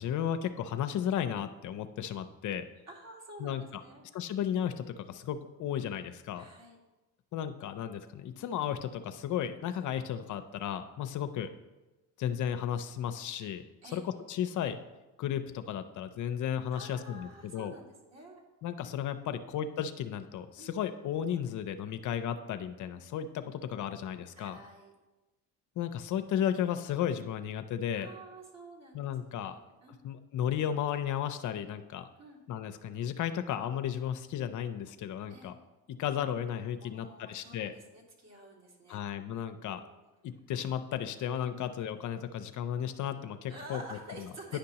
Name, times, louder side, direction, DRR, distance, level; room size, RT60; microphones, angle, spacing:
voice 1, 0.0-2.6 3.4-3.8 4.1-6.4 7.3-11.5 12.2-13.6 13.9-14.8 15.2-17.7 18.6-24.6 25.8-28.1 28.9-29.6 30.0-32.1 32.5-35.5 35.9-37.7 38.9-39.8 40.2-43.8 44.5-44.6, left 9 dB, 60° left, 9 dB, 0.5 m, -34 dB
voice 2, 2.9-4.1 6.4-6.8 13.8-14.0 16.7-18.4 19.2-19.4 20.6-20.7 24.4-24.9 28.0-29.1 29.4-30.0 32.2-32.4 35.3-35.5 36.8-39.0 39.6-40.0 41.5-41.7 43.4-44.6, right 2 dB, 50° right, -2 dB, 2.1 m, -50 dB
10.0 x 5.2 x 2.9 m, 1.1 s
supercardioid pair, 80°, 35 cm